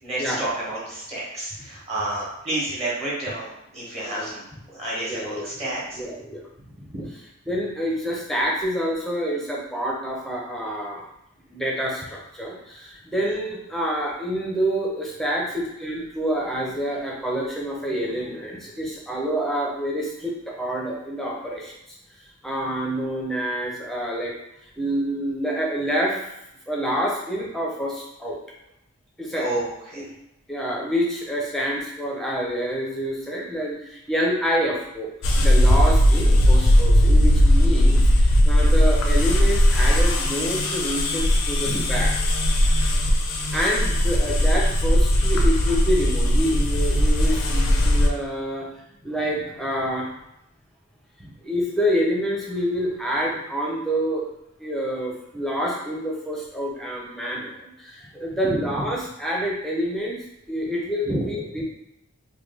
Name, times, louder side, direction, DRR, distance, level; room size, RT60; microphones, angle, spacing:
voice 1, 0.0-6.0 6.9-7.1 13.2-13.3 29.3-30.0 41.6-42.0 58.4-58.9 61.0-61.3, right 1 dB, 30° right, -7 dB, 1.1 m, -30 dB
voice 2, 5.1-5.6 5.9-6.5 7.5-11.0 11.5-21.7 22.4-24.3 24.8-26.3 26.7-28.4 29.2-29.5 30.0-30.1 30.5-35.1 35.4-42.1 43.5-48.7 49.0-50.1 51.4-54.2 54.6-60.2 60.5-61.6, equal, ahead, -3 dB, 0.5 m, -27 dB
sound 1, 35.2-48.1, equal, 70° left, 0.4 m, -18 dB
3.2 x 2.2 x 3.3 m, 0.84 s
head